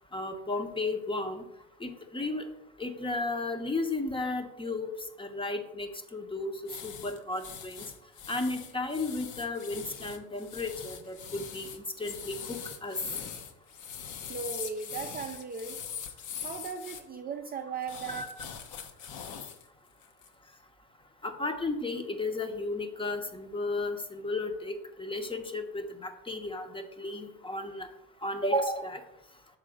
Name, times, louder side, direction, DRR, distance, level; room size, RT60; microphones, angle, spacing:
voice 1, 0.1-1.4 1.8-2.4 2.8-4.9 5.2-6.5 6.8-7.8 8.3-13.0 18.1-18.3 21.2-27.9 28.2-29.0, left 2 dB, 15° left, 7 dB, 0.8 m, -34 dB
sound 1, 6.7-17.0 17.8-19.6 20.0-20.3, left 7 dB, 55° left, 0.9 m, -42 dB
voice 2, 14.3-15.8 16.4-18.3, right 5 dB, 25° right, 4 dB, 0.5 m, -37 dB
6.2 x 3.7 x 5.0 m, 0.87 s
supercardioid pair, 90°, 36 cm